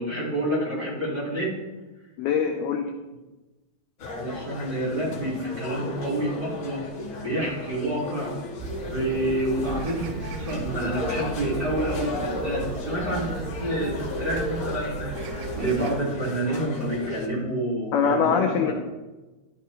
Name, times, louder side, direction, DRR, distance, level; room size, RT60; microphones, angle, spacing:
voice 1, 0.0-1.6 4.1-6.8 7.2-8.4 8.8-15.1 15.5-18.7, right 1 dB, 20° right, -8 dB, 4.7 m, -28 dB
voice 2, 2.2-2.9 17.9-18.7, left 7 dB, 80° left, 3 dB, 2.3 m, -23 dB
sound 1, 4.0-17.3, left 2 dB, 65° left, 1.3 m, -35 dB
sound 2, 8.6-15.9, right 4 dB, 75° right, 2.5 m, -36 dB
15.0 x 12.5 x 3.2 m, 1.1 s
omnidirectional pair, 5.2 m